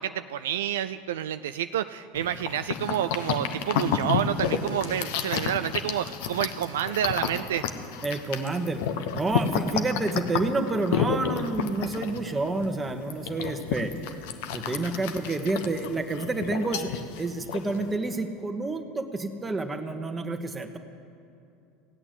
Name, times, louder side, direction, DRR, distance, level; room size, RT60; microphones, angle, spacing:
voice 1, 0.0-7.7, right 11 dB, 75° right, 10 dB, 0.3 m, -29 dB
sound 1, 2.1-18.0, left 7 dB, 65° left, 0.9 m, -31 dB
voice 2, 8.0-8.8 9.1-13.9 14.5-20.8, right 2 dB, 15° right, 6 dB, 1.4 m, -29 dB
16.5 x 8.8 x 8.3 m, 2.6 s
hypercardioid pair, 75°, 0 cm